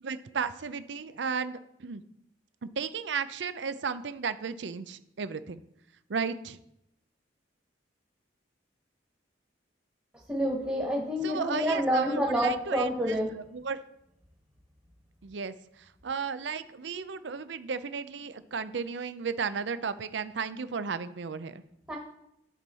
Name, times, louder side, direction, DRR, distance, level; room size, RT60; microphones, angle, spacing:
voice 1, 0.0-2.0 2.6-5.6 6.1-6.6 11.2-13.2 13.5-13.8 15.2-15.5 16.0-21.6, right 5 dB, 70° right, 13 dB, 0.5 m, -34 dB
voice 2, 10.3-13.3 21.9-22.0, equal, 10° right, -3 dB, 1.5 m, -28 dB
11.0 x 5.4 x 4.3 m, 0.81 s
head